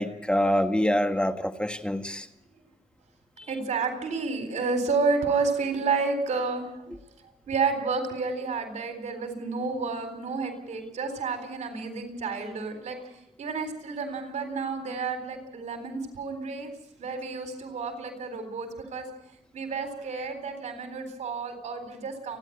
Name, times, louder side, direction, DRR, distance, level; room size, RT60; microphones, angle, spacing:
voice 1, 0.0-2.3, equal, 10° left, 7 dB, 1.7 m, -25 dB
voice 2, 3.5-6.9 7.5-13.0 13.4-16.7 17.0-19.1 19.5-22.4, right 4 dB, 90° right, 6 dB, 3.9 m, -30 dB
29.0 x 10.5 x 8.7 m, 0.81 s
cardioid pair, 55°, 12 cm